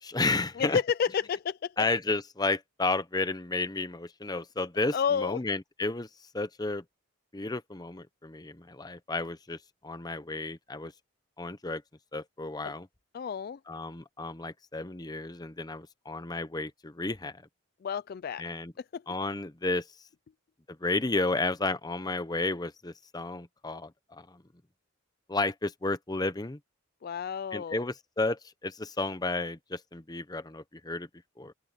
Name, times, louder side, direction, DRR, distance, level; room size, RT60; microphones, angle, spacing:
voice 1, 0.0-0.8 1.8-6.1 6.3-6.8 7.3-10.9 11.4-11.8 12.1-12.9 13.7-17.4 18.4-18.7 19.1-19.9 20.7-24.4 25.3-26.6 27.5-31.1 31.4-31.5, left 2 dB, 20° left, 0.8 m, -32 dB
voice 2, 0.6-1.7 4.9-5.4 13.1-13.6 17.8-18.4 18.9-19.0 27.0-27.8, left 7 dB, 45° left, 0.3 m, -30 dB
open air
head